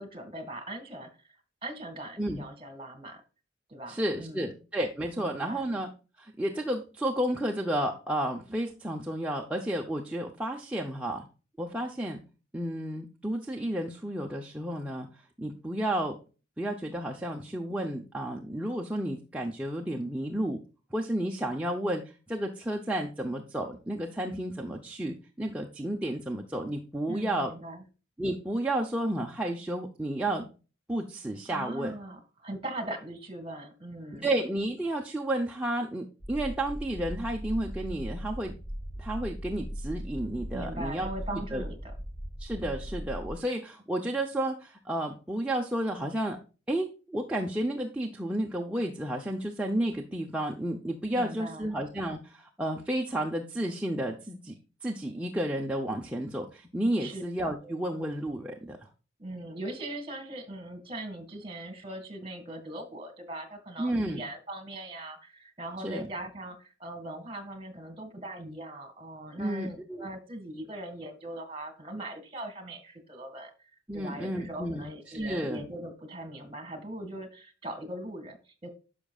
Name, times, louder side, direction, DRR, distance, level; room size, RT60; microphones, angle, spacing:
voice 1, 0.0-1.4 1.6-3.2 3.7-4.5 5.2-5.6 27.1-27.8 31.5-34.3 40.5-41.9 51.1-51.7 57.0-57.3 57.6-57.8 59.2-73.5 73.9-78.7, right 1 dB, 30° right, 7 dB, 2.0 m, -40 dB
voice 2, 3.9-5.9 6.2-11.3 11.6-12.2 12.5-15.1 15.4-16.1 16.6-20.6 20.9-22.0 22.3-27.5 28.2-30.4 30.9-31.9 34.2-38.5 39.0-41.6 42.4-46.4 46.7-54.5 54.8-58.8 63.8-64.2 65.8-66.1 69.4-70.1 73.9-75.7, right 1 dB, 5° right, 0 dB, 0.7 m, -32 dB
sound 1, 36.2-43.4, equal, 15° left, 1.9 m, -39 dB
10.5 x 6.2 x 2.4 m, 0.34 s
head